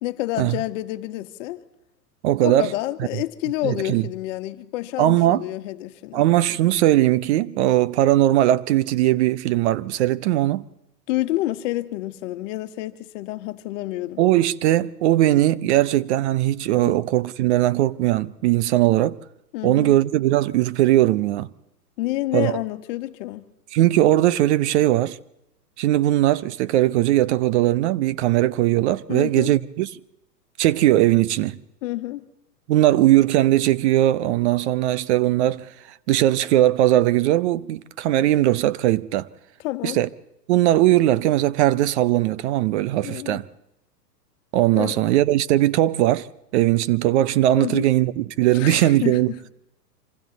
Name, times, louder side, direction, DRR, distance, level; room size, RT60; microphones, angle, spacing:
voice 1, 0.0-1.6 2.4-6.2 11.1-14.2 16.8-17.0 19.5-20.0 22.0-23.4 29.1-29.5 31.8-32.2 39.6-40.0 43.0-43.4 44.7-45.0 47.6-47.8 48.5-49.5, left 17 dB, 50° left, 1.6 m, -29 dB
voice 2, 2.2-2.7 3.6-4.0 5.0-5.4 6.1-10.6 14.2-19.2 19.6-21.5 22.3-22.5 23.7-25.2 25.8-29.9 30.6-31.6 32.7-35.7 36.1-39.3 39.8-40.1 40.5-43.5 44.5-46.3 46.5-49.3, right 14 dB, 45° right, 0.7 m, -19 dB
26.5 x 25.0 x 4.0 m
hypercardioid pair, 120°, 49 cm